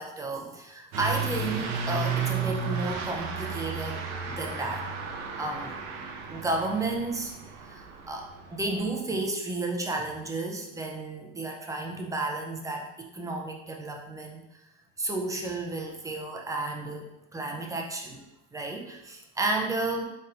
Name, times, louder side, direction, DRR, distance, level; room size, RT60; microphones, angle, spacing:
voice 1, 0.0-4.8 5.4-5.7 6.3-7.3 7.6-14.4 15.0-18.2 18.5-20.0, right 2 dB, 10° right, 1 dB, 0.4 m, -32 dB
Truck / Accelerating revving vroom, 0.9-8.9, right 5 dB, 80° right, 0.8 m, -33 dB
4.1 x 4.0 x 2.6 m, 0.89 s
supercardioid pair, 125°, 35 cm